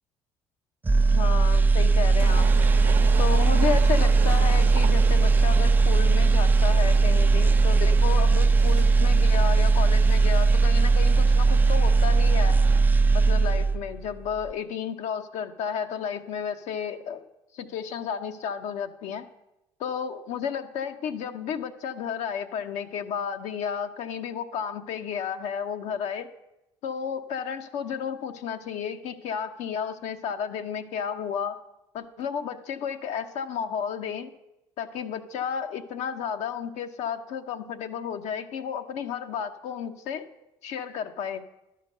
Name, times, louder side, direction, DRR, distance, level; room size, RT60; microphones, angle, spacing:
sound 1, 0.8-14.0 14.3-14.5, right 4 dB, 15° right, 0.4 m, -19 dB
voice 1, 1.1-2.7 3.2-12.6 13.1-17.2 17.5-19.3 19.8-26.3 26.8-31.6 31.9-34.3 34.8-40.3 40.6-41.4, left 7 dB, 75° left, 6 dB, 0.7 m, -32 dB
sound 2, 2.2-12.8, right 7 dB, 75° right, 0.9 m, -37 dB
11.0 x 5.8 x 6.5 m, 0.93 s
supercardioid pair, 65°, 12 cm